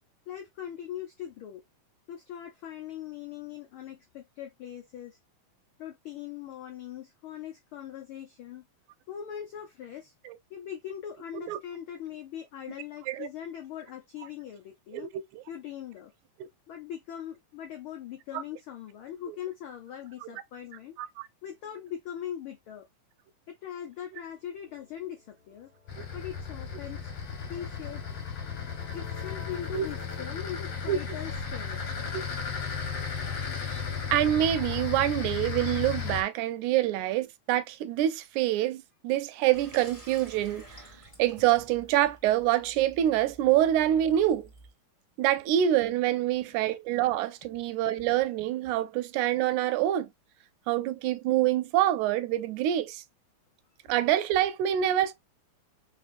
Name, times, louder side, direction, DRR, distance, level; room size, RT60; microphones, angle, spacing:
voice 1, 0.3-1.6 2.1-5.2 5.8-8.6 9.1-10.1 10.5-15.1 15.5-16.1 16.7-21.0 21.4-22.9 23.5-25.7 26.1-27.1 27.5-28.2 28.9-31.8 46.3-46.8, left 10 dB, 85° left, 1.1 m, -41 dB
voice 2, 14.9-15.4 16.4-16.5 18.3-18.4 19.3-19.4 21.0-21.3 29.7-29.9 30.9-31.0 32.1-32.2 34.1-40.6 41.2-44.5 45.2-50.1 50.7-53.0 53.9-55.1, right 12 dB, 85° right, 2.0 m, -26 dB
sound 1, 24.3-30.8, left 7 dB, 45° left, 1.3 m, -51 dB
sound 2, 25.9-36.2, left 6 dB, 60° left, 1.7 m, -35 dB
Water tap faucet / Sink (filling or washing), 39.5-44.7, right 1 dB, 15° left, 1.8 m, -51 dB
4.3 x 4.1 x 2.5 m
omnidirectional pair, 3.4 m